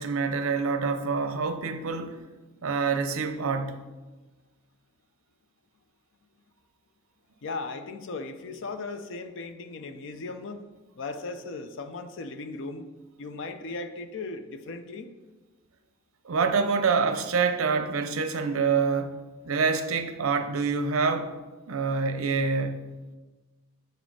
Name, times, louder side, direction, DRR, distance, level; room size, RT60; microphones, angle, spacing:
voice 1, 0.0-2.2 2.6-3.8 16.2-21.3 21.7-22.9, right 5 dB, 75° right, 0.6 m, -26 dB
voice 2, 7.4-10.6 11.0-12.9 13.2-15.1, left 3 dB, 60° left, 0.5 m, -37 dB
6.7 x 4.1 x 4.7 m
head